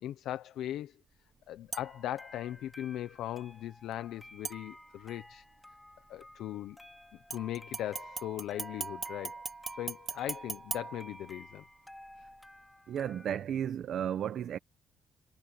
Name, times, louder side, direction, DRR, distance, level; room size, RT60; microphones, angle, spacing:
voice 1, 0.0-1.0 1.5-5.4 6.1-6.8 7.3-9.4 9.8-11.6, left 13 dB, 85° left, 0.8 m, -39 dB
sound 1, 1.7-13.4, left 1 dB, 10° left, 2.6 m, -54 dB
sound 2, 1.7-2.2 4.4-5.2 7.3-11.7 12.1-12.2, right 4 dB, 35° right, 2.7 m, -41 dB
voice 2, 12.9-14.6, right 9 dB, 65° right, 1.3 m, -33 dB
cardioid pair, 90°, 0 cm